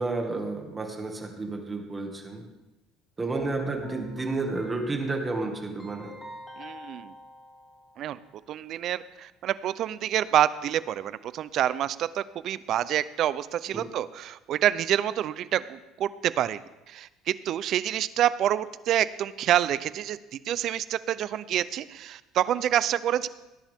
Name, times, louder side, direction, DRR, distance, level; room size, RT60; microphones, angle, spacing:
voice 1, 0.0-2.4 3.2-6.2 13.7-13.8, right 3 dB, 20° right, 3 dB, 2.0 m, -31 dB
Keyboard (musical), 3.4-8.3, equal, 10° left, 2.4 m, -43 dB
voice 2, 6.6-7.1 8.0-8.2 8.5-16.6 16.9-20.2 20.5-23.3, right 11 dB, 55° right, 16 dB, 0.6 m, -27 dB
18.0 x 10.5 x 3.6 m, 1.0 s
cardioid pair, 120°, 0 cm